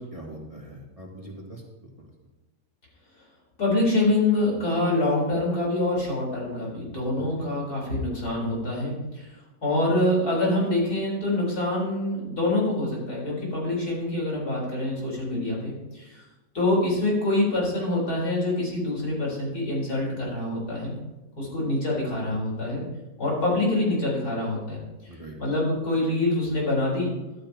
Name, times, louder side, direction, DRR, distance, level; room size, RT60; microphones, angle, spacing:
voice 1, 0.0-2.1 7.2-7.5 25.1-25.4, right 1 dB, 20° right, -2 dB, 1.9 m, -42 dB
voice 2, 3.6-9.3 9.6-16.2 16.5-20.9 21.4-22.8 23.2-24.8 25.4-27.1, left 2 dB, 85° left, -4 dB, 4.7 m, -25 dB
14.0 x 12.0 x 2.9 m, 1.1 s
omnidirectional pair, 1.6 m